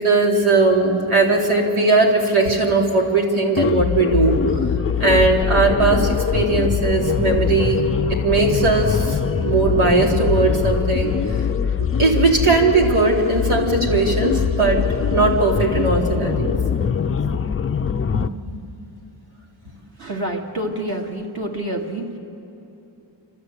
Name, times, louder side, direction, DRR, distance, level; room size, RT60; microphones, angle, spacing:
voice 1, 0.0-4.4 5.0-9.2 9.4-11.1 12.0-14.8 15.1-16.5 17.2-17.4 18.1-18.5, right 3 dB, 90° right, -1 dB, 3.2 m, -18 dB
sound 1, 3.6-18.3, left 7 dB, 30° left, 0.4 m, -22 dB
voice 2, 20.0-22.2, right 1 dB, 50° right, 0 dB, 2.3 m, -27 dB
29.0 x 13.5 x 8.3 m, 2.8 s
wide cardioid pair, 120°, 48 cm